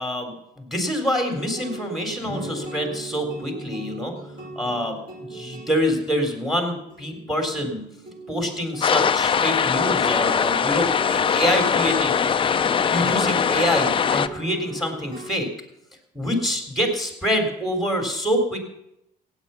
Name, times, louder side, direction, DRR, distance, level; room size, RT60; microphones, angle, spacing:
voice 1, 0.0-4.1 4.6-7.8 8.3-15.5 16.1-18.6, equal, ahead, 4 dB, 3.7 m, -26 dB
sound 1, 1.4-15.3, right 2 dB, 30° right, 5.9 m, -39 dB
sound 2, 8.8-14.3, left 7 dB, 30° left, 0.6 m, -21 dB
16.0 x 8.9 x 7.0 m, 0.80 s
cardioid pair, 110°, 17 cm